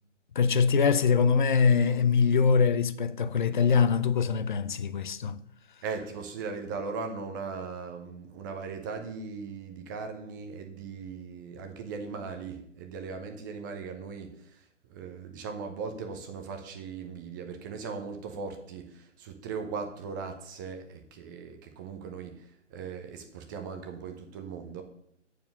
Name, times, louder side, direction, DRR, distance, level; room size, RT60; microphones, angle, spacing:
voice 1, 0.3-5.4, left 6 dB, 40° left, 0.5 m, -23 dB
voice 2, 5.8-24.8, right 5 dB, 15° right, 0.7 m, -39 dB
8.6 x 4.8 x 6.7 m
figure-of-eight pair, 135°, 37 cm